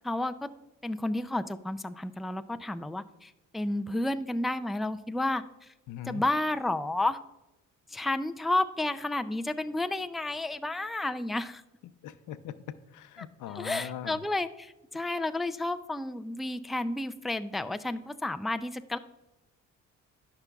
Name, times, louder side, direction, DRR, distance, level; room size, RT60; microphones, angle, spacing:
voice 1, 0.0-0.3 0.8-5.7 6.1-7.2 7.9-11.6 13.5-19.0, left 2 dB, ahead, 9 dB, 0.3 m, -31 dB
voice 2, 5.9-6.2 12.0-12.5 12.9-14.2, left 11 dB, 85° left, 13 dB, 0.6 m, -40 dB
13.5 x 5.9 x 2.3 m, 0.98 s
cardioid pair, 90°, 30 cm